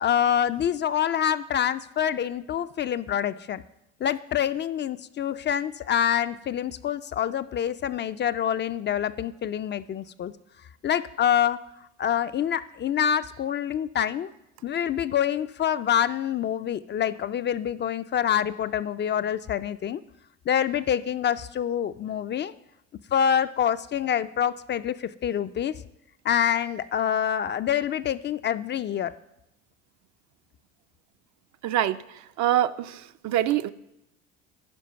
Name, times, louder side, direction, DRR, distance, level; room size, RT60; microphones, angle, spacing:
voice 1, 0.0-3.6 4.0-10.3 10.8-11.6 12.0-14.3 14.6-20.0 20.5-22.5 23.1-25.7 26.2-29.1, left 9 dB, 35° left, 12 dB, 0.4 m, -26 dB
voice 2, 31.6-32.0 32.4-33.7, right 12 dB, 55° right, 12 dB, 0.5 m, -24 dB
10.5 x 5.1 x 5.6 m, 0.85 s
hypercardioid pair, 70°, 34 cm